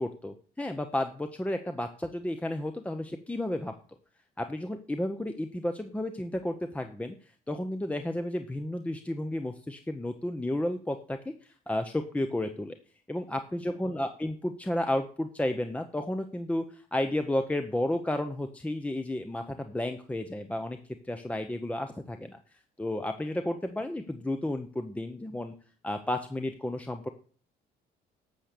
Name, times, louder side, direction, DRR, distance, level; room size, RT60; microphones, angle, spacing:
voice 1, 0.0-3.7 4.4-7.2 7.5-11.3 11.7-12.8 13.1-20.8 21.1-22.4 22.8-25.5 25.8-27.1, left 1 dB, 10° left, 7 dB, 0.8 m, -32 dB
12.0 x 6.9 x 6.7 m, 0.43 s
cardioid pair, 110°, 17 cm